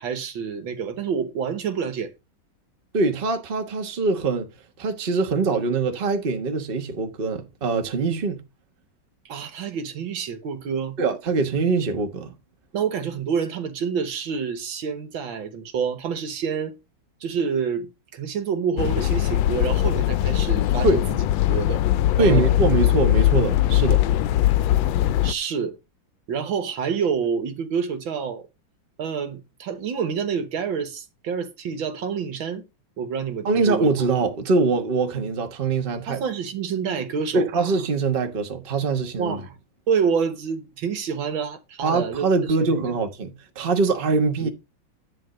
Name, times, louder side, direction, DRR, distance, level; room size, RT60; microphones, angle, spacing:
voice 1, 0.0-2.1 9.3-11.0 12.7-16.8 17.2-21.0 21.5-21.8 22.2-22.6 25.2-25.8 26.3-28.4 29.0-32.6 33.0-33.9 36.1-37.7 39.2-39.6 39.9-42.3 42.6-42.9 44.4-44.5, right 6 dB, 75° right, 2.0 m, -28 dB
voice 2, 2.9-4.5 4.8-8.4 11.0-12.3 20.8-21.0 22.2-24.0 33.4-36.2 37.3-39.4 41.8-44.5, right 4 dB, 30° right, 1.2 m, -23 dB
sound 1, 18.8-25.3, left 13 dB, 75° left, 1.3 m, -20 dB
10.5 x 3.6 x 6.4 m
omnidirectional pair, 2.2 m